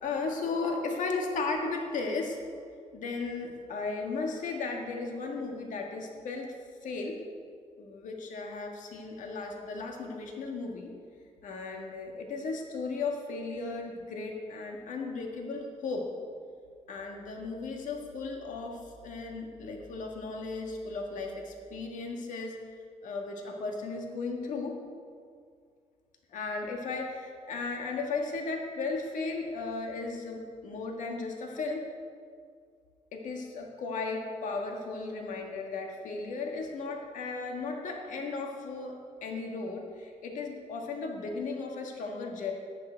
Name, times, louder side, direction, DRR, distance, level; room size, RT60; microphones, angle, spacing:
voice 1, 0.0-2.4 2.9-6.5 6.8-7.2 7.8-10.9 11.4-16.1 16.9-22.5 23.0-24.8 26.3-31.9 33.1-42.5, left 3 dB, 80° left, 1 dB, 1.7 m, -35 dB
14.5 x 10.5 x 4.6 m, 2.2 s
cardioid pair, 115°, 13 cm